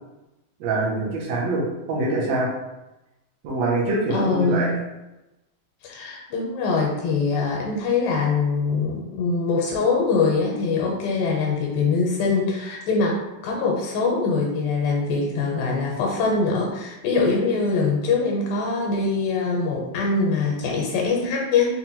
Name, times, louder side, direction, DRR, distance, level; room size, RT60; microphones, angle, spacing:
voice 1, 0.6-2.5 3.4-4.7, right 2 dB, 70° right, -5 dB, 1.6 m, -24 dB
voice 2, 4.1-4.8 5.8-21.8, left 4 dB, 85° left, -2 dB, 2.3 m, -23 dB
5.8 x 2.2 x 2.8 m, 0.99 s
omnidirectional pair, 4.2 m